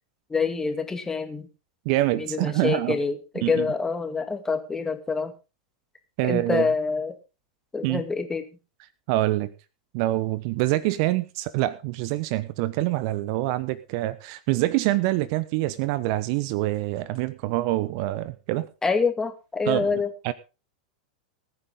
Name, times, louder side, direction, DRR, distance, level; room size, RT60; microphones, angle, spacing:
voice 1, 0.3-1.5 2.1-5.3 6.2-7.1 7.7-8.4 18.8-20.1, left 4 dB, 15° left, 7 dB, 2.2 m, -26 dB
voice 2, 1.8-3.0 3.4-3.7 6.2-6.7 7.8-8.0 9.1-9.5 9.9-18.7 19.7-20.3, right 17 dB, 50° right, 17 dB, 0.9 m, -25 dB
20.0 x 9.4 x 3.7 m, 0.31 s
figure-of-eight pair, 95°, 4 cm